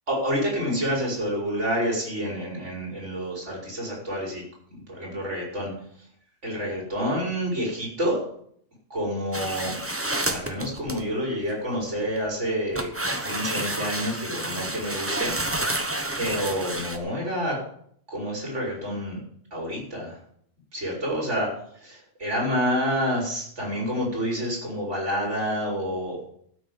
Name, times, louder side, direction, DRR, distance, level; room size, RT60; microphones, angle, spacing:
voice 1, 0.1-4.4 4.7-5.7 6.4-8.2 8.9-9.7 10.3-12.9 13.2-15.8 16.2-17.6 18.1-19.2 19.5-20.2 20.7-21.5 21.9-26.3, equal, 55° right, -3 dB, 5.6 m, -28 dB
sound 1, 9.3-11.0 11.7-12.2 12.8-17.0, right 1 dB, 10° right, 0.9 m, -30 dB
12.5 x 6.4 x 8.1 m, 0.66 s
omnidirectional pair, 1.4 m